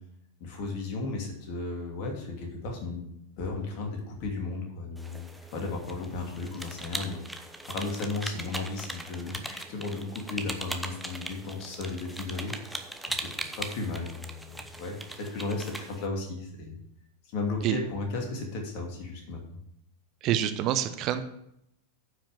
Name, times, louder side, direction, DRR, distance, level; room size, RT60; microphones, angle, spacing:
voice 1, 0.4-3.1 3.4-16.8 17.3-19.4, left 3 dB, 45° left, 1 dB, 2.7 m, -35 dB
sound 1, 5.0-16.1, right 1 dB, ahead, 1.0 m, -40 dB
voice 2, 20.2-21.2, right 11 dB, 40° right, 10 dB, 0.7 m, -26 dB
9.4 x 6.0 x 6.7 m, 0.77 s
figure-of-eight pair, 90°, 0 cm